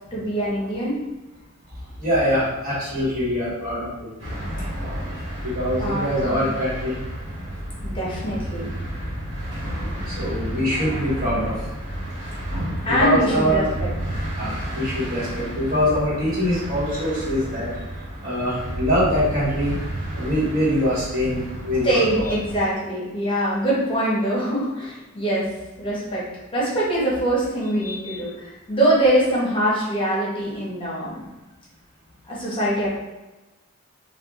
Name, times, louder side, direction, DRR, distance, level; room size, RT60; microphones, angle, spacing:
voice 1, 0.1-1.0 5.8-6.4 7.8-8.7 12.8-13.9 21.8-25.5 25.8-26.2 26.5-31.2 32.3-32.9, right 1 dB, 25° left, -7 dB, 0.9 m, -23 dB
voice 2, 2.0-4.3 5.4-7.0 10.0-11.6 12.8-13.6 14.3-17.7 18.2-19.8 20.1-22.4 27.8-28.2, equal, 45° right, -8 dB, 1.5 m, -24 dB
sound 1, 4.2-22.6, equal, 60° right, 1.2 m, -31 dB
4.5 x 2.3 x 2.4 m, 1.1 s
head